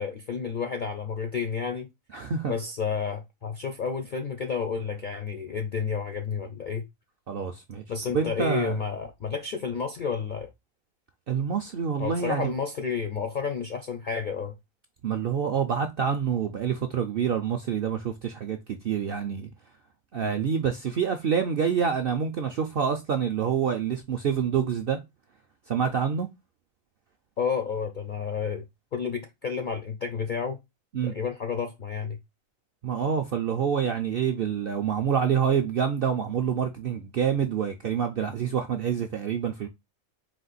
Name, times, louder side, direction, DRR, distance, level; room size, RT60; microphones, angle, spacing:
voice 1, 0.0-1.9 2.5-6.8 7.9-10.5 12.0-14.6 27.4-28.6 28.9-30.6 31.0-32.2, left 6 dB, 65° left, 0.5 m, -31 dB
voice 2, 2.1-2.5 7.3-7.8 8.1-8.8 11.3-12.5 15.0-19.5 20.1-25.0 25.7-26.3 30.9-31.1 32.8-39.7, right 7 dB, 65° right, 0.5 m, -27 dB
4.3 x 2.5 x 3.9 m
omnidirectional pair, 1.5 m